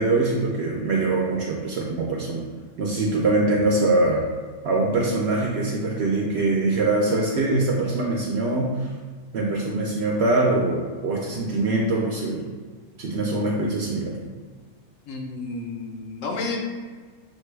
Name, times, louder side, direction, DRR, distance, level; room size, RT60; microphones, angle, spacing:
voice 1, 0.0-2.5 2.8-4.2 4.6-8.9 9.3-12.4 13.0-14.2, right 2 dB, 60° right, -2 dB, 0.7 m, -23 dB
voice 2, 15.1-16.6, left 3 dB, 65° left, 1 dB, 1.0 m, -31 dB
6.4 x 2.2 x 3.2 m, 1.5 s
omnidirectional pair, 1.5 m